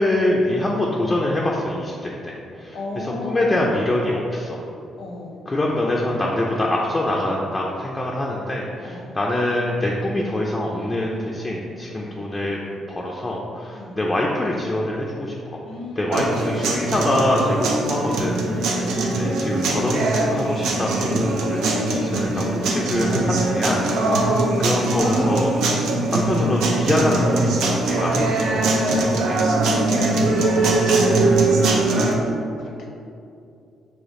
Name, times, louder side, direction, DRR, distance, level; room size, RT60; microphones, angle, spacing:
voice 1, 0.0-4.6 5.5-12.6 12.9-15.6 16.0-20.0 20.3-23.8 24.6-25.5 25.9-29.5 30.4-30.7 32.0-32.2, left 1 dB, 20° left, -3 dB, 0.4 m, -24 dB
voice 2, 2.7-3.7 5.0-5.4 8.8-9.2 12.0-12.3 13.8-14.0 15.6-16.6 18.5-19.3 24.0-25.5 25.8-26.1 29.6-32.9, left 2 dB, 75° left, -1 dB, 0.8 m, -34 dB
sound 1, 16.1-32.1, right 2 dB, 85° right, 0.5 m, -21 dB
5.0 x 2.2 x 3.7 m, 2.5 s
cardioid pair, 90°, 0 cm